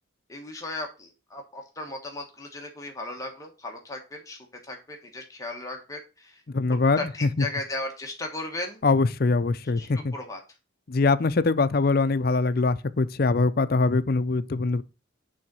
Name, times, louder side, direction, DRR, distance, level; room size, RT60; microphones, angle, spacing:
voice 1, 0.3-6.4 7.0-8.8 9.8-10.4, left 2 dB, 15° left, 1.2 m, -36 dB
voice 2, 6.5-7.5 8.8-10.1 10.9-14.8, left 3 dB, 50° left, 0.5 m, -23 dB
9.2 x 3.9 x 6.0 m
head